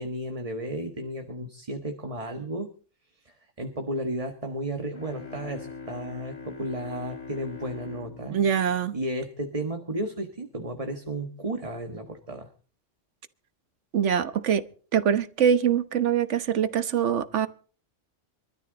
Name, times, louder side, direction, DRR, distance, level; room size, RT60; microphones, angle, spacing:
voice 1, 0.0-2.7 3.2-8.4 8.9-12.5, right 1 dB, 30° right, 1.6 m, -33 dB
sound 1, 4.9-9.6, left 4 dB, 80° left, 2.5 m, -42 dB
voice 2, 8.3-8.9 13.9-14.7 14.9-17.5, right 8 dB, 70° right, 1.3 m, -23 dB
24.5 x 13.0 x 4.0 m
omnidirectional pair, 1.3 m